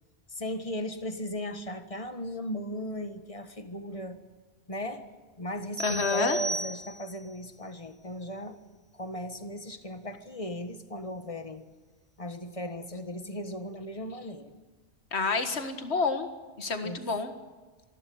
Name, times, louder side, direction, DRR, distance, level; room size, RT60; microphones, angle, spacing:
voice 1, 0.3-4.2 4.7-5.1 5.4-8.6 8.9-11.6 12.2-14.5 16.8-17.0, equal, 30° left, 9 dB, 1.5 m, -37 dB
voice 2, 5.8-6.4 15.1-16.3 16.6-17.3, left 4 dB, 75° left, 8 dB, 1.9 m, -28 dB
sound 1, 5.8-7.3, right 2 dB, 55° right, 2.0 m, -35 dB
26.5 x 12.0 x 8.7 m, 1.4 s
omnidirectional pair, 1.1 m